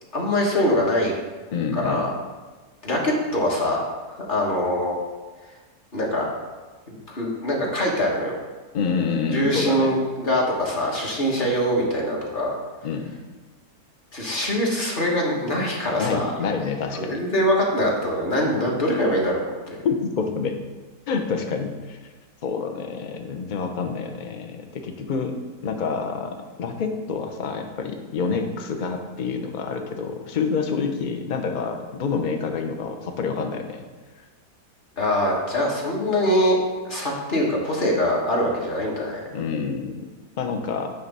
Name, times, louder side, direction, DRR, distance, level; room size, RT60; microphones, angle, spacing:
voice 1, 0.1-1.1 1.7-2.1 2.8-3.8 4.3-4.9 5.9-6.3 6.9-8.3 9.3-12.5 14.1-16.3 16.9-19.4 19.7-19.8 35.0-36.6 36.8-39.2, equal, 35° left, -2 dB, 1.4 m, -23 dB
voice 2, 1.5-2.1 8.7-9.9 12.8-13.1 16.0-17.2 18.6-18.7 19.8-20.6 21.1-22.0 22.4-25.3 25.6-33.8 39.3-40.0 40.4-40.9, left 5 dB, 50° left, 4 dB, 0.6 m, -27 dB
9.1 x 3.3 x 5.3 m, 1.3 s
omnidirectional pair, 1.7 m